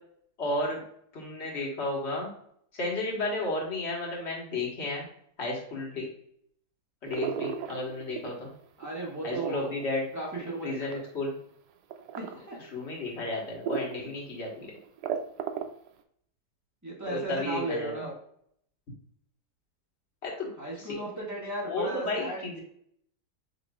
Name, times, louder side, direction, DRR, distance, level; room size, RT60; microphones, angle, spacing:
voice 1, 0.4-0.8 1.1-2.3 2.7-5.1 5.4-6.1 7.0-8.5 9.2-10.1 10.6-11.3 12.7-14.7 17.1-18.1 20.2-20.5 20.7-20.9 21.7-22.6, left 2 dB, 45° left, -2 dB, 1.6 m, -33 dB
sound 1, 7.1-8.5 8.8-11.1 11.9-12.3 12.9-13.0 13.6-14.1 14.4-14.5 14.8-15.9, right 8 dB, 85° right, 1.2 m, -34 dB
voice 2, 8.8-9.7 10.1-11.0 12.1-12.6 16.8-18.1 20.6-22.4, right 2 dB, 10° right, -4 dB, 1.2 m, -35 dB
7.3 x 3.0 x 2.4 m, 0.67 s
omnidirectional pair, 1.8 m